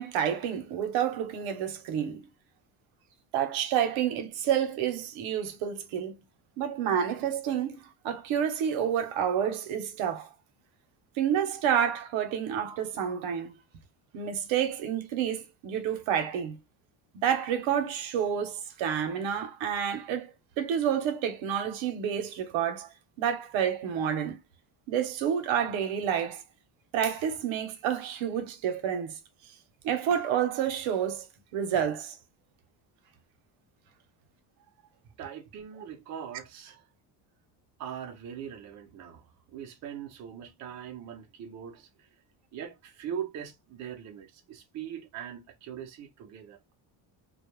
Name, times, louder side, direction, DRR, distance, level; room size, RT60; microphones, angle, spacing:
voice 1, 0.0-2.3 3.3-6.1 6.6-10.3 11.2-13.5 14.1-16.6 17.1-20.3 20.6-22.9 23.2-24.4 24.9-26.4 26.9-29.1 29.8-31.2 31.5-32.1, right 9 dB, 75° right, 0.8 m, -29 dB
voice 2, 34.6-34.9 35.2-36.9 37.8-42.1 42.5-46.7, right 9 dB, 40° right, 0.5 m, -41 dB
2.3 x 2.1 x 3.0 m
cardioid pair, 160°, 48 cm